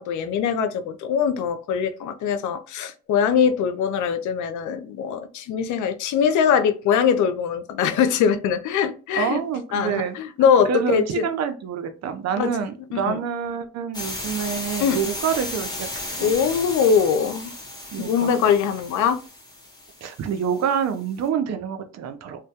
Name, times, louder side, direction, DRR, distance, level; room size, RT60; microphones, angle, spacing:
voice 1, 0.0-9.4 9.7-11.3 12.4-12.5 12.9-13.2 14.8-15.0 16.2-17.5 18.0-19.2, left 7 dB, 75° left, 9 dB, 0.5 m, -22 dB
voice 2, 9.1-10.2 10.7-16.3 17.9-18.4 20.0-22.5, right 7 dB, 60° right, 8 dB, 0.5 m, -27 dB
sound 1, 13.9-20.9, left 2 dB, 15° left, 0.9 m, -35 dB
2.2 x 2.1 x 2.7 m, 0.35 s
cardioid pair, 90°, 30 cm